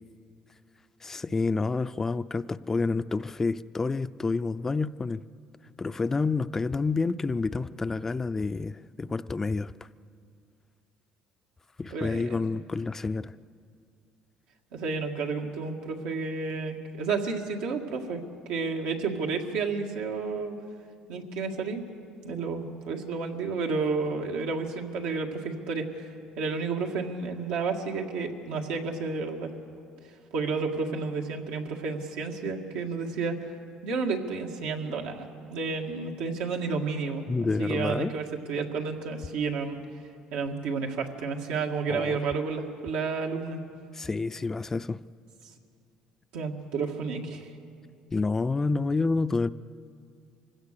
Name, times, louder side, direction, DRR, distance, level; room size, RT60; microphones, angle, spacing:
voice 1, 1.0-5.2 5.8-9.7 11.8-13.3 37.3-38.1 41.9-42.2 43.9-45.0 48.1-49.5, left 3 dB, 20° left, 13 dB, 0.4 m, -28 dB
voice 2, 11.9-12.6 14.7-20.6 21.1-21.8 22.2-29.5 30.3-33.6 33.8-39.8 40.3-43.6 46.3-47.5, right 4 dB, 90° right, 1 dB, 1.9 m, -31 dB
23.5 x 16.5 x 6.7 m, 2.4 s
cardioid pair, 110°, 2 cm